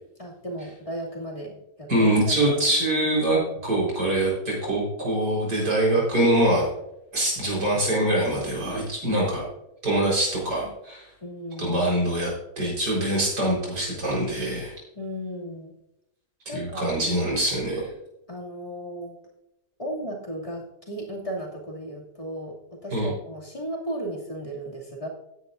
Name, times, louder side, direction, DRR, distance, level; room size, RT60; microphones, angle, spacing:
voice 1, 0.2-2.1 2.5-2.6 11.2-11.8 14.9-15.7 16.5-16.8 18.3-19.2 19.8-25.1, right 1 dB, 20° left, -3 dB, 2.4 m, -35 dB
voice 2, 1.9-6.7 7.1-9.4 9.8-11.1 11.6-14.7 16.5-17.9 22.9-23.1, right 1 dB, 85° right, -4 dB, 4.8 m, -24 dB
16.0 x 10.0 x 2.5 m, 0.86 s
omnidirectional pair, 1.7 m